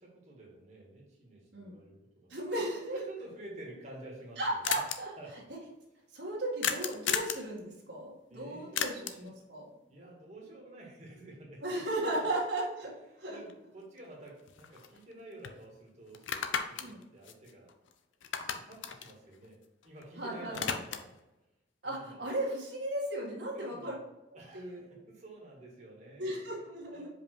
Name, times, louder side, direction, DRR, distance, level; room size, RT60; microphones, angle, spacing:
voice 1, 0.0-2.4 2.7-4.8 5.2-5.3 8.3-9.3 9.9-12.3 13.3-17.7 18.2-19.6 19.8-21.1 21.8-22.3 23.5-24.0 24.3-26.3 26.9-27.1, right 1 dB, 40° right, -3 dB, 1.7 m, -50 dB
voice 2, 2.3-3.0 4.4-5.1 6.1-9.7 11.6-13.4 16.8-17.0 20.2-20.7 21.8-23.9 24.5-25.0 26.2-27.1, right 1 dB, 65° right, -3 dB, 1.7 m, -36 dB
sound 1, 3.7-3.8 4.0-4.1 4.3-4.4 4.6-5.0 6.6-7.5 8.8-9.3 13.5-13.6 14.0-15.1 15.4-15.6 16.1-17.9 18.2-20.0 20.3-21.2, left 7 dB, 85° left, 0.6 m, -35 dB
5.2 x 5.0 x 4.5 m, 1.0 s
head